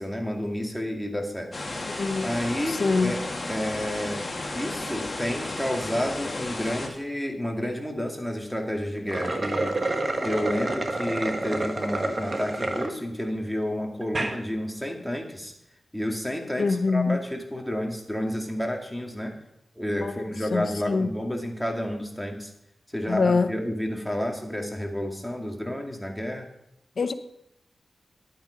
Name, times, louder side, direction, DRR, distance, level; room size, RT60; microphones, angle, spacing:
voice 1, 0.0-1.5 2.2-3.2 3.5-4.3 4.5-9.8 10.2-15.5 15.9-19.3 19.8-22.5 22.9-26.5, equal, ahead, 1 dB, 2.2 m, -30 dB
sound 1, 1.5-6.9, left 2 dB, 35° left, 2.2 m, -33 dB
voice 2, 1.9-2.3 2.7-3.1 16.6-17.2 20.0-21.1 23.1-23.5 27.0-27.1, left 4 dB, 70° left, 10 dB, 0.7 m, -25 dB
sound 2, 9.0-12.9 13.4-13.5 14.0-14.4, right 2 dB, 40° right, 1.3 m, -28 dB
11.0 x 8.9 x 5.2 m, 0.81 s
cardioid pair, 65°, 0 cm